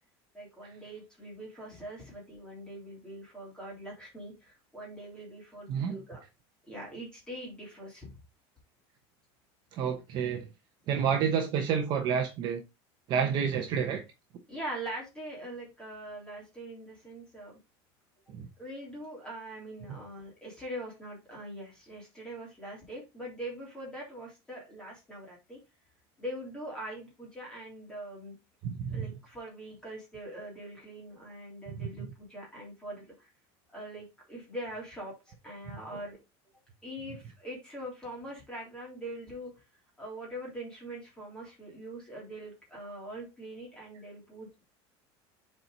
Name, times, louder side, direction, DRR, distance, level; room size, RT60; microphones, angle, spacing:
voice 1, 0.3-6.2 6.7-8.1 10.9-11.1 14.5-17.6 18.6-25.6 26.2-28.4 28.9-33.3 33.7-36.2 36.8-39.5 40.0-44.6, right 1 dB, 5° left, 3.3 m, -42 dB
voice 2, 9.7-10.5 10.9-12.6 13.1-14.0 18.3-18.5 19.9-20.0 28.6-29.1, right 7 dB, 35° right, 1.0 m, -29 dB
7.8 x 4.4 x 3.9 m
cardioid pair, 180°, 13 cm